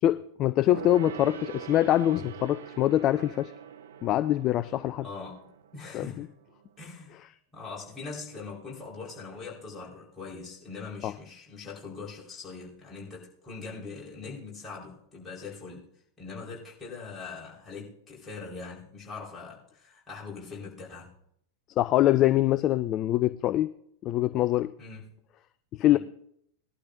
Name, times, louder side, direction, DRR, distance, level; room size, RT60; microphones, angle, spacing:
voice 1, 0.0-3.5 4.0-5.1 5.9-6.3 11.0-11.1 21.8-23.7 24.0-24.7 25.7-26.0, left 13 dB, 35° left, 0.4 m, -24 dB
Gong, 0.7-6.6 6.8-6.9, right 9 dB, 60° right, 0.8 m, -43 dB
voice 2, 5.0-6.3 6.8-7.2 7.5-15.9 16.2-21.1 24.8-25.1 25.9-26.0, left 4 dB, 15° left, 4.3 m, -42 dB
19.5 x 11.5 x 2.6 m
figure-of-eight pair, 90°, 0 cm